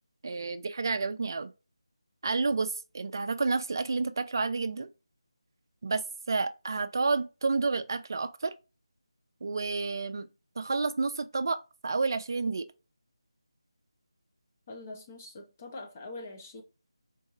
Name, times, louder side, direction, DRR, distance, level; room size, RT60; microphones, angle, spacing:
voice 1, 0.2-1.5 2.2-4.9 5.8-8.5 9.4-10.3 10.6-12.7, right 4 dB, 45° right, 0.4 m, -30 dB
voice 2, 14.7-16.6, left 2 dB, 25° left, 0.6 m, -43 dB
3.9 x 2.7 x 2.4 m
figure-of-eight pair, 170°, 3 cm